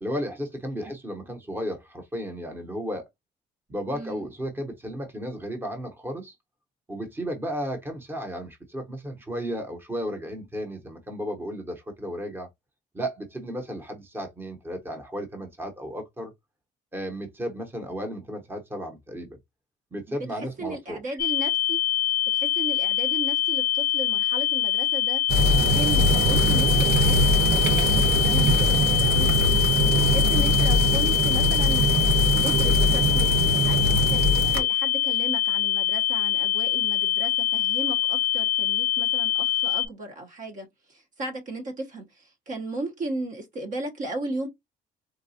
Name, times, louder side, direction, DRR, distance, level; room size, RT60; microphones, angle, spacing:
voice 1, 0.0-3.1 3.7-6.3 6.9-12.5 12.9-16.3 16.9-19.4 19.9-21.0, equal, 15° right, 0.9 m, -34 dB
voice 2, 3.9-4.3 20.6-21.8 22.3-25.2 25.6-29.6 30.0-44.5, right 2 dB, 50° right, 0.9 m, -36 dB
sound 1, 21.2-39.9, left 13 dB, 70° left, 0.4 m, -24 dB
sound 2, 25.3-34.6, equal, 75° right, 0.9 m, -22 dB
3.9 x 2.3 x 2.7 m
cardioid pair, 110°, 17 cm